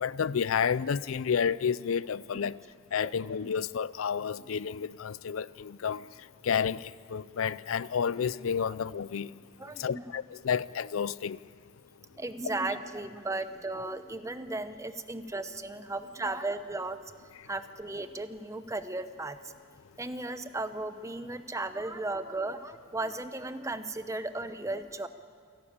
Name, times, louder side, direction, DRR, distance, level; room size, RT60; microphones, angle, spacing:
voice 1, 0.0-2.6 2.9-6.0 6.4-9.3 9.8-11.4, left 7 dB, 80° left, 0.4 m, -30 dB
voice 2, 9.6-10.0 12.1-17.0 17.4-19.5 20.0-25.1, right 2 dB, 15° right, 0.8 m, -35 dB
28.0 x 12.5 x 8.7 m
head